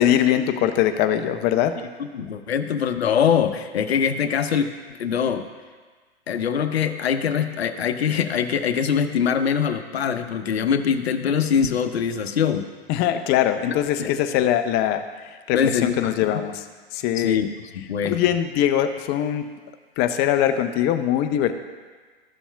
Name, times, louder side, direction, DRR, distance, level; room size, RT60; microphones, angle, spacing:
voice 1, 0.0-1.8 12.9-16.6 16.9-17.4 18.0-19.5 20.0-21.5, left 11 dB, 30° left, 9 dB, 0.6 m, -22 dB
voice 2, 2.1-4.7 5.0-5.4 6.3-12.7 14.0-14.1 15.5-16.4 17.2-17.5 17.7-18.1, left 7 dB, 75° left, 9 dB, 0.7 m, -23 dB
14.0 x 7.0 x 2.3 m, 1.4 s
hypercardioid pair, 105°, 31 cm